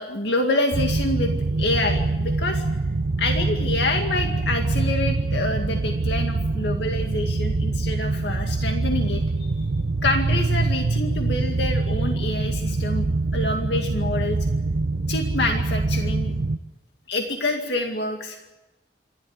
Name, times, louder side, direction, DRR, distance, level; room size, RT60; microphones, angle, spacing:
voice 1, 0.0-1.3 1.6-2.6 3.2-9.7 10.0-14.4 15.1-16.3 17.1-18.4, left 2 dB, 70° left, 3 dB, 2.2 m, -27 dB
sound 1, 0.7-16.6, right 3 dB, 70° right, 0.7 m, -24 dB
27.5 x 12.5 x 9.6 m, 0.98 s
head